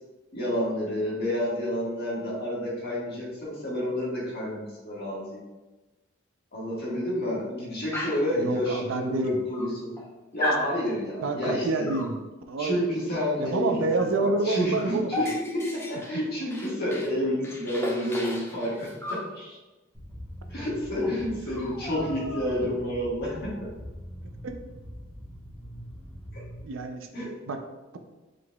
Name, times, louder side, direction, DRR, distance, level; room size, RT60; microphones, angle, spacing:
voice 1, 0.3-5.4 6.5-9.9 10.3-11.9 12.6-13.8 14.2-19.6 20.5-23.7 26.3-26.4 27.1-27.4, equal, 50° left, -6 dB, 1.5 m, -29 dB
Dog, 7.9-8.3 9.2-9.3 9.5-10.1 10.4-10.7 11.9-12.2 14.0-14.2 14.4-17.1 17.4-19.3 20.6-20.7 21.0-21.2 21.5-22.7, left 1 dB, 10° left, 0.6 m, -35 dB
voice 2, 8.3-9.3 11.2-12.2 12.5-12.8 13.4-15.3 26.6-27.6, right 3 dB, 70° right, 6 dB, 0.4 m, -28 dB
sound 1, 19.9-26.6, equal, 5° right, 1.1 m, -43 dB
4.8 x 4.0 x 2.2 m, 1.1 s
head